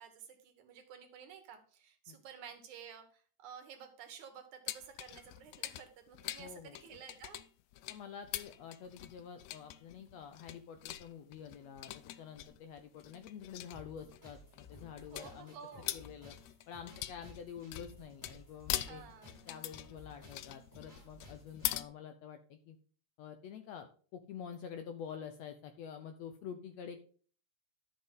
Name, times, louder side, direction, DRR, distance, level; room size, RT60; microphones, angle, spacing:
voice 1, 0.0-7.4 15.1-16.0 18.7-19.5, right 7 dB, 70° right, 6 dB, 2.7 m, -52 dB
sound 1, 4.7-21.8, left 14 dB, 90° left, 1.5 m, -43 dB
voice 2, 6.4-6.8 7.9-15.5 15.9-16.4 16.7-19.0 19.5-22.8 23.2-27.0, left 7 dB, 75° left, 8 dB, 1.6 m, -48 dB
sound 2, 13.7-21.7, left 1 dB, 5° left, 5.2 m, -57 dB
12.0 x 6.7 x 3.7 m, 0.42 s
omnidirectional pair, 3.7 m